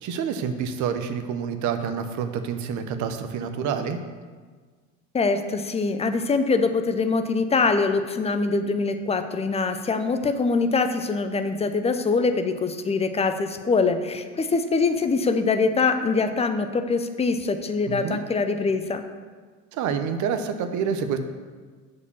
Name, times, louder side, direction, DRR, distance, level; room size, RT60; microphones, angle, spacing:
voice 1, 0.0-4.0 17.9-18.2 19.7-21.2, right 7 dB, 45° right, 8 dB, 0.9 m, -28 dB
voice 2, 5.1-19.0, left 4 dB, 15° left, 8 dB, 0.6 m, -23 dB
6.8 x 4.9 x 7.0 m, 1.5 s
hypercardioid pair, 85°, 39 cm